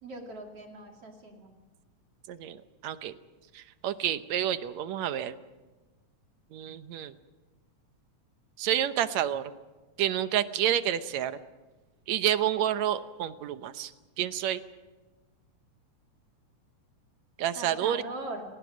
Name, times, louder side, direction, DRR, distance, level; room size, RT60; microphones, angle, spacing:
voice 1, 0.0-1.5 17.5-18.4, right 2 dB, 55° right, 2 dB, 3.3 m, -40 dB
voice 2, 2.3-3.1 3.5-5.3 6.5-7.1 8.6-9.4 10.0-11.4 12.1-13.9 14.2-14.6 17.4-18.0, right 11 dB, 75° right, 11 dB, 2.1 m, -29 dB
29.0 x 19.5 x 6.3 m, 1.2 s
omnidirectional pair, 3.3 m